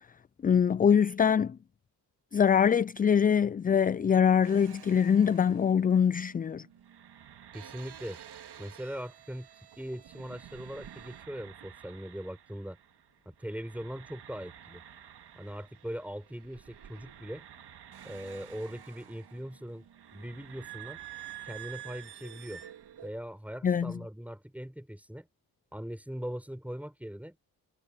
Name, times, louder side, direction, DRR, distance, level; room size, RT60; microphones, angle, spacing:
voice 1, 0.4-1.6 2.3-6.6 23.6-23.9, left 7 dB, 25° left, 0.3 m, -23 dB
sound 1, 4.4-13.1 13.3-23.1, right 10 dB, 70° right, 2.1 m, -50 dB
voice 2, 7.5-8.2 8.6-9.5 9.8-12.8 13.2-14.8 15.4-17.4 18.0-19.8 20.1-21.0 21.4-22.6 23.0-25.3 25.7-27.4, equal, 5° right, 4.6 m, -40 dB
cardioid pair, 65°, 42 cm